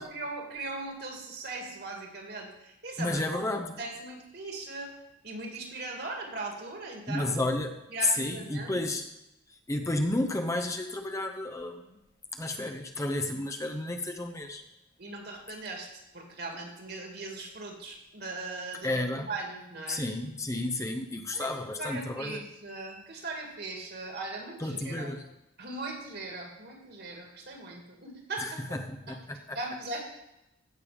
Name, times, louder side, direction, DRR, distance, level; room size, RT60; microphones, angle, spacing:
voice 1, 0.0-3.4 3.8-4.9 5.2-7.4 7.9-8.8 15.0-20.0 21.3-21.5 21.8-25.1 25.6-28.6 29.1-29.2 29.5-30.0, right 2 dB, 55° right, 1 dB, 2.5 m, -39 dB
voice 2, 3.0-3.8 7.1-9.1 9.7-12.0 12.3-14.6 18.8-19.3 19.9-22.4 24.6-25.2 28.4-29.6, left 2 dB, 15° left, 4 dB, 0.7 m, -32 dB
16.0 x 6.8 x 5.2 m, 0.90 s
head